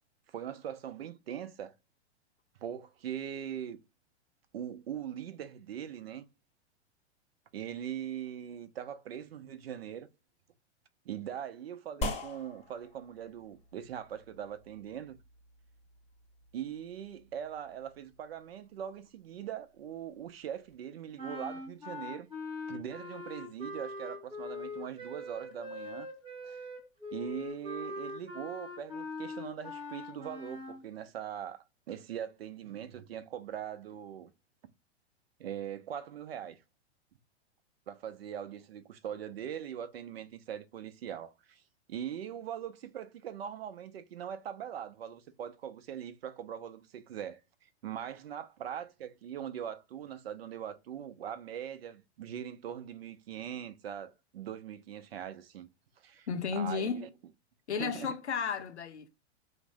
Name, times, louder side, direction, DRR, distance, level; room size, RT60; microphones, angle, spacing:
voice 1, 0.3-1.7 2.6-3.8 4.5-6.3 7.5-10.1 11.1-15.2 16.5-22.3 22.7-26.1 26.4-26.6 27.1-34.3 35.4-36.6 37.9-41.6 41.9-55.7 56.0-56.3 56.5-57.1 57.8-58.1, right 9 dB, 60° right, 0.6 m, -41 dB
sound 1, 12.0-20.7, left 1 dB, 20° left, 0.8 m, -45 dB
sound 2, 21.2-30.8, left 2 dB, 15° right, 1.0 m, -42 dB
voice 2, 56.3-57.1 57.7-59.1, left 6 dB, 75° left, 0.7 m, -33 dB
3.2 x 2.1 x 3.1 m
figure-of-eight pair, 100°, 34 cm